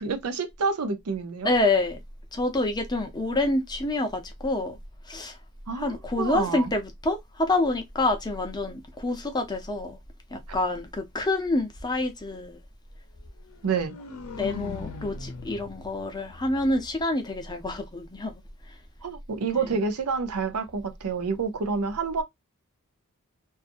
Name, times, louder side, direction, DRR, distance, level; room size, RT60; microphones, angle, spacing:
voice 1, 0.0-1.5 3.3-3.4 5.7-6.7 13.6-14.0 19.0-22.2, right 5 dB, 80° right, 0.6 m, -28 dB
voice 2, 1.4-2.0 2.3-4.8 5.1-5.4 5.7-10.0 10.3-12.6 14.4-18.4 19.5-19.8, left 2 dB, 20° left, 0.6 m, -27 dB
sound 1, 13.5-17.5, left 4 dB, 80° left, 0.6 m, -40 dB
2.6 x 2.4 x 2.5 m
head